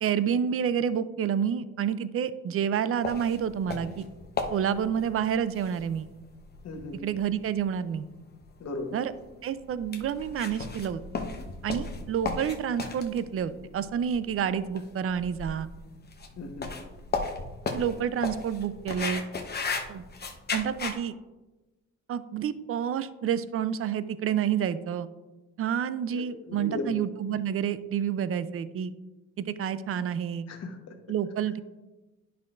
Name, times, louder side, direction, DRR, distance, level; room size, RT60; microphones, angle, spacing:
voice 1, 0.0-4.1 4.5-6.1 7.0-8.1 8.9-9.1 9.4-11.0 11.6-15.7 17.7-19.2 19.9-20.1 20.5-21.2 22.1-25.1 25.6-28.9 29.4-30.5 31.1-31.6, right 8 dB, 50° right, 14 dB, 0.5 m, -29 dB
sound 1, 3.0-21.0, left 4 dB, 35° left, 0.9 m, -36 dB
voice 2, 6.6-7.0 8.6-9.0 16.4-16.7 26.1-26.9 30.5-31.0, left 2 dB, 55° left, 4 dB, 1.1 m, -36 dB
9.9 x 5.7 x 2.5 m, 1.1 s
cardioid pair, 90°, 30 cm